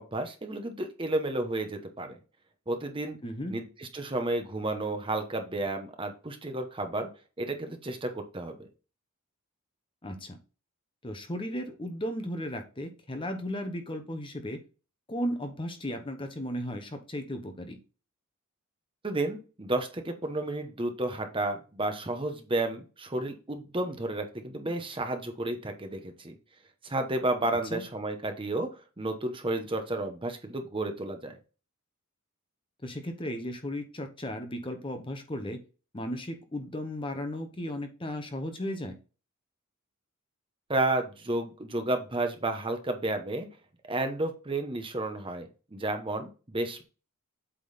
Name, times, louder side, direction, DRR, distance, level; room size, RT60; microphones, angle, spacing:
voice 1, 0.0-2.2 2.7-3.2 3.5-7.1 7.4-8.7 19.0-26.3 26.8-28.7 29.0-31.4 40.7-43.5 43.9-46.8, right 2 dB, 25° right, 6 dB, 0.9 m, -32 dB
voice 2, 3.2-3.6 10.0-10.4 11.0-14.6 15.1-17.8 27.7-27.8 32.8-35.6 35.9-38.9, equal, 25° left, 7 dB, 0.9 m, -35 dB
8.2 x 3.7 x 4.1 m, 0.33 s
head